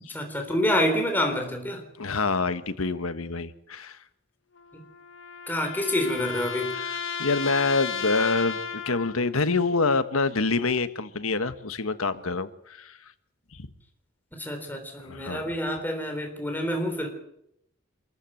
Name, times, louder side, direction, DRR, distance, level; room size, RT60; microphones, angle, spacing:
voice 1, 0.1-1.8 4.7-4.8 5.5-6.8 14.3-17.1, left 1 dB, 10° left, 3.6 m, -27 dB
voice 2, 2.0-4.0 7.2-8.6 8.8-13.0 13.5-13.7 15.1-15.4, left 3 dB, 85° left, 1.4 m, -26 dB
sound 1, 4.6-9.3, left 6 dB, 65° left, 2.1 m, -34 dB
27.0 x 14.5 x 7.8 m
head